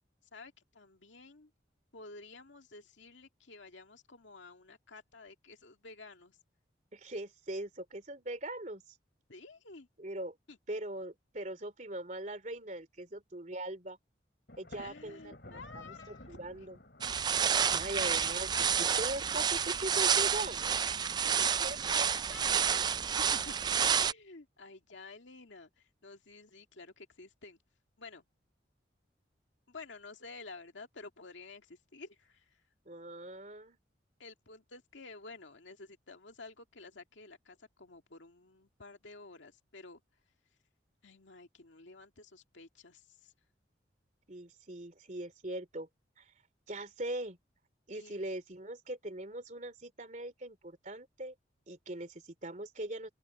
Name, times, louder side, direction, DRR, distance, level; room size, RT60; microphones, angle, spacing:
voice 1, 0.3-1.5 1.9-6.4 9.3-9.9 10.5-10.6 14.7-16.7 21.2-21.9 22.3-22.7 23.2-23.5 23.9-27.6 28.0-28.2 29.7-32.6 34.2-40.0 41.0-43.3 47.9-48.2, left 3 dB, 85° left, 2.2 m, -51 dB
voice 2, 6.9-8.8 10.0-10.4 10.7-14.0 14.6-16.8 17.4-20.7 21.4-22.1 22.5-23.1 32.9-33.8 44.3-45.9 46.2-46.3 46.7-47.4 47.9-51.3 51.7-53.1, right 1 dB, 40° right, 3.1 m, -41 dB
Thunder, 14.5-19.1, left 1 dB, 60° left, 4.0 m, -53 dB
sound 1, 17.0-24.1, right 7 dB, 25° right, 0.3 m, -29 dB
open air
head